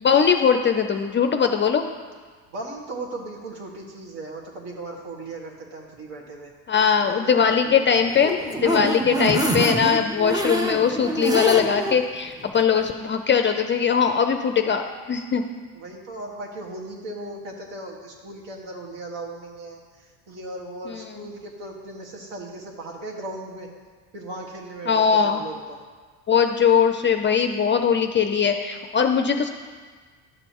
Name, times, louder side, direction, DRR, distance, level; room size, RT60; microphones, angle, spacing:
voice 1, 0.0-1.9 6.7-15.5 24.9-25.4 26.3-29.5, left 7 dB, 25° left, 6 dB, 0.5 m, -20 dB
voice 2, 2.5-6.5 6.8-8.0 15.7-23.7 24.1-25.8, right 2 dB, 60° right, -1 dB, 1.8 m, -37 dB
sound 1, 8.0-12.0 12.4-12.5 12.8-12.9, right 1 dB, 10° right, 0.7 m, -26 dB
12.0 x 6.9 x 3.0 m, 1.5 s
hypercardioid pair, 65°, 47 cm